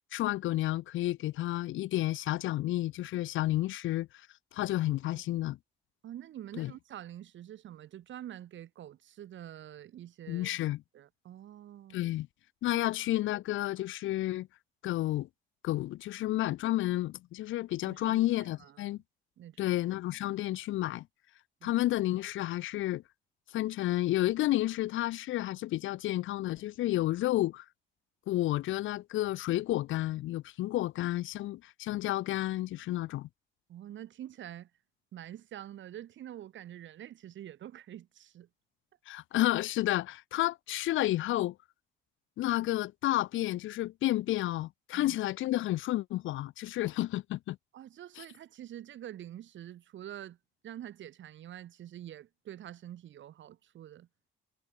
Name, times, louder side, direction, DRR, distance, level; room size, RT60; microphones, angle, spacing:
voice 1, 0.1-4.3 4.5-5.6 6.6-6.7 10.3-10.8 11.9-12.3 12.6-14.5 14.8-15.3 15.6-19.0 19.6-21.1 21.6-23.0 23.5-27.6 28.3-33.3 39.1-41.6 42.4-47.6 48.2-48.3, left 15 dB, 80° left, 0.7 m, -31 dB
voice 2, 6.0-10.5 10.9-12.0 12.7-12.8 17.9-19.0 19.4-19.7 21.6-21.8 33.7-34.7 35.1-38.5 44.9-45.2 47.7-50.4 50.6-54.1, right 11 dB, 70° right, 2.4 m, -46 dB
cardioid pair, 90°, 20 cm